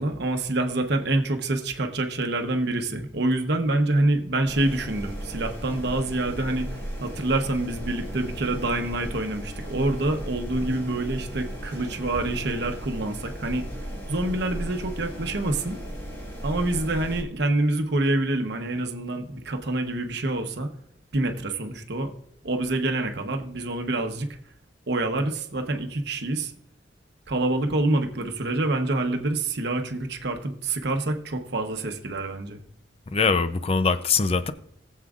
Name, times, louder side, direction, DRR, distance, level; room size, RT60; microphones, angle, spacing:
voice 1, 0.0-13.6 14.1-15.8 16.4-20.7 21.1-22.1 22.4-24.3 24.9-26.5 27.3-32.6, right 2 dB, 60° right, 1.0 m, -26 dB
sound 1, 4.5-17.2, equal, 15° left, 1.7 m, -36 dB
voice 2, 33.1-34.5, left 4 dB, 30° left, 0.5 m, -22 dB
19.5 x 7.4 x 2.4 m
head